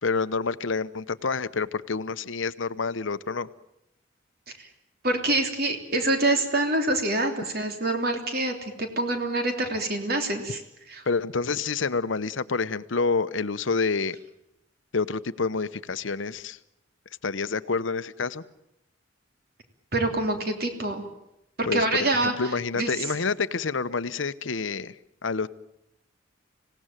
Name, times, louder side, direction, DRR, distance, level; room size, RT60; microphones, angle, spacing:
voice 1, 0.0-3.5 11.1-14.2 14.9-16.6 17.2-18.4 21.7-25.5, left 4 dB, 85° left, 14 dB, 0.9 m, -28 dB
voice 2, 5.0-10.6 10.9-11.0 19.9-21.0 21.6-22.3 22.7-22.9, right 2 dB, 50° right, 5 dB, 3.4 m, -26 dB
26.5 x 17.5 x 9.0 m, 0.83 s
head